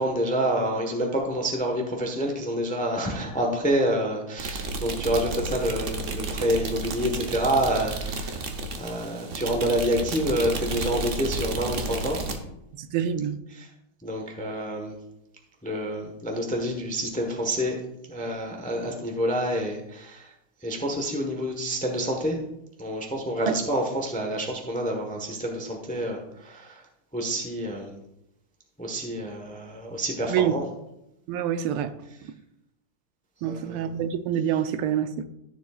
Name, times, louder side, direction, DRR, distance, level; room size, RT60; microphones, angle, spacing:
voice 1, 0.0-12.2 13.5-13.7 14.0-15.0 15.6-17.8 18.1-20.3 20.6-22.4 22.8-26.8 27.1-28.0 28.8-30.6 33.4-34.0, equal, 5° left, 0.6 m, -28 dB
sound 1, 4.4-12.4, right 3 dB, 55° right, 0.8 m, -32 dB
voice 2, 12.8-13.4 23.5-23.6 30.3-30.5 31.3-32.0 33.4-35.2, right 9 dB, 85° right, 1.5 m, -26 dB
13.0 x 7.1 x 2.4 m
omnidirectional pair, 2.4 m